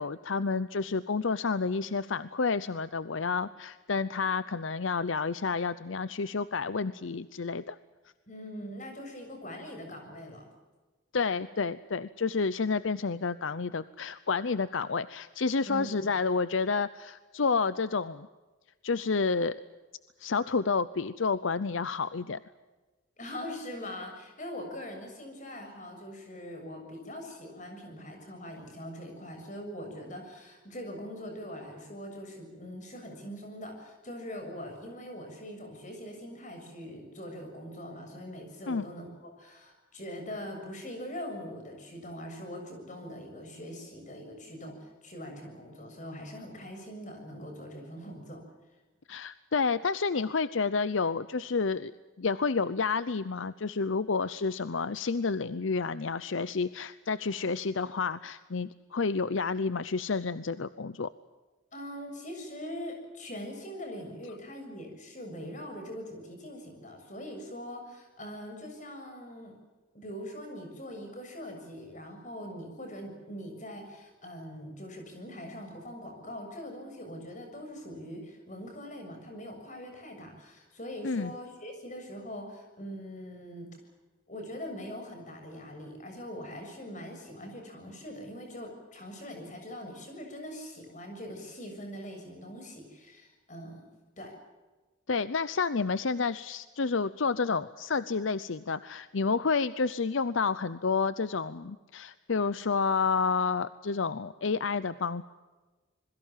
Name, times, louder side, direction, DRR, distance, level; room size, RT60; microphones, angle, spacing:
voice 1, 0.0-7.8 11.1-18.3 18.8-19.5 20.2-22.4 38.7-38.9 49.1-51.9 52.2-61.1 81.0-81.3 95.1-105.2, left 4 dB, 75° left, 15 dB, 0.7 m, -30 dB
voice 2, 8.3-10.5 15.6-16.1 23.2-48.4 61.7-69.5 69.9-83.7 84.3-94.3, equal, 40° left, 4 dB, 7.0 m, -42 dB
27.0 x 22.0 x 7.4 m, 1.3 s
head